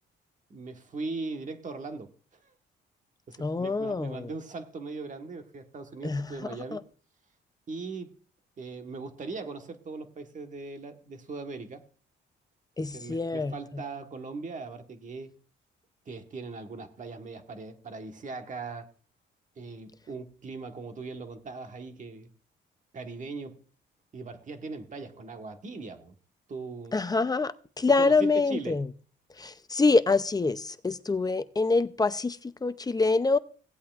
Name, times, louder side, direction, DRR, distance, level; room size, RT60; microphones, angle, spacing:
voice 1, 0.5-2.5 3.3-6.8 7.7-8.1 8.6-11.8 12.8-15.3 16.1-18.9 19.6-22.3 22.9-23.6 24.1-26.1 26.5-27.0 27.9-28.8, right 3 dB, 40° right, 1.4 m, -39 dB
voice 2, 3.4-4.3 6.0-6.3 6.7-6.8 12.8-13.5 26.9-28.8 29.4-33.4, left 3 dB, 20° left, 0.6 m, -25 dB
17.0 x 8.4 x 2.5 m
cardioid pair, 90°, 20 cm